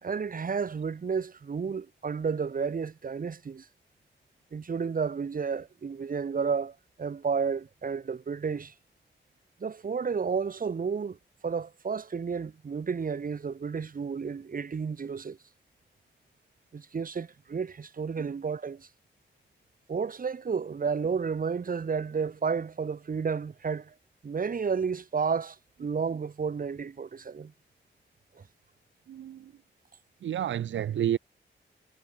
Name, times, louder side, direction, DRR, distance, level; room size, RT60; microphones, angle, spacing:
voice 1, 0.0-3.7 4.5-8.7 9.6-11.2 11.4-15.4 16.7-18.9 19.9-23.9 24.2-27.5 28.4-28.5, right 5 dB, 45° right, 1.8 m, -31 dB
voice 2, 29.1-29.5 30.2-31.2, right 10 dB, 75° right, 0.6 m, -30 dB
cardioid pair, 100°, 20 cm